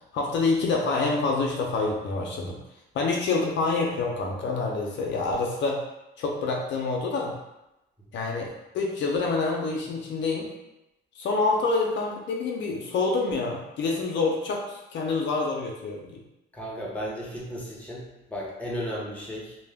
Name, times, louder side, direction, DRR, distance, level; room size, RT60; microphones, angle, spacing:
voice 1, 0.1-2.6 2.9-5.8 6.2-7.3 8.1-8.5 8.7-10.5 11.2-16.2, left 3 dB, 65° left, -1 dB, 0.5 m, -27 dB
voice 2, 16.5-19.6, equal, 5° left, -4 dB, 0.8 m, -34 dB
2.1 x 2.1 x 3.4 m, 0.92 s
cardioid pair, 90°, 20 cm